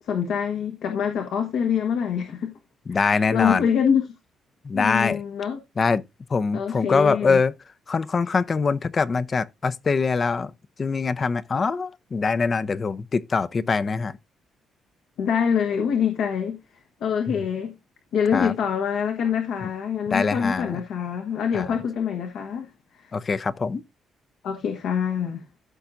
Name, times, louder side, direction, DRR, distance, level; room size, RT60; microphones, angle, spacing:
voice 1, 0.0-2.5 2.9-4.0 4.7-5.6 6.5-7.4 15.2-16.6 17.0-17.7 18.1-23.1 24.4-25.4, left 7 dB, 80° left, 1.3 m, -25 dB
voice 2, 2.9-3.6 4.6-5.2 5.8-6.0 6.3-7.5 7.9-10.5 10.8-14.2 17.3-17.4 18.3-18.5 19.6-19.7 20.1-20.8 21.5-21.8 23.1-23.8, left 4 dB, 40° left, 0.6 m, -23 dB
14.5 x 5.8 x 2.5 m
cardioid pair, 90°, 0 cm